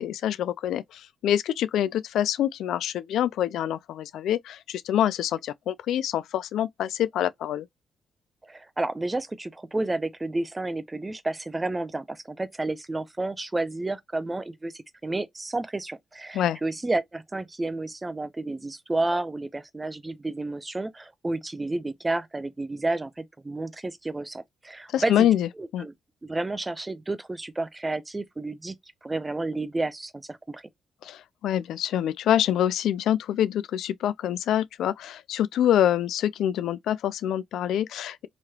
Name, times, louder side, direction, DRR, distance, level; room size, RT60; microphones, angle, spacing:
voice 1, 0.0-7.7 16.3-16.6 24.9-25.9 31.0-38.3, left 11 dB, 80° left, 0.3 m, -26 dB
voice 2, 8.4-25.1 25.6-25.9 26.2-28.7 29.0-30.6, right 2 dB, 20° right, 0.5 m, -31 dB
3.1 x 2.9 x 2.3 m
cardioid pair, 90°, 0 cm